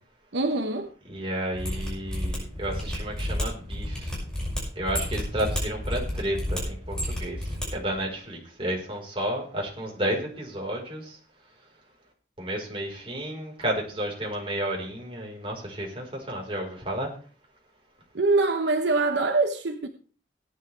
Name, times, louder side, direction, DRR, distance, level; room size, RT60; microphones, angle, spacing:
voice 1, 0.3-0.9 18.1-19.9, right 3 dB, 75° right, 1.1 m, -24 dB
voice 2, 1.1-4.2 4.7-11.2 12.4-17.1, right 1 dB, 30° right, 4.6 m, -32 dB
Mechanisms, 1.5-7.7 7.9-8.0, equal, 5° left, 6.2 m, -31 dB
18.0 x 10.5 x 3.4 m
head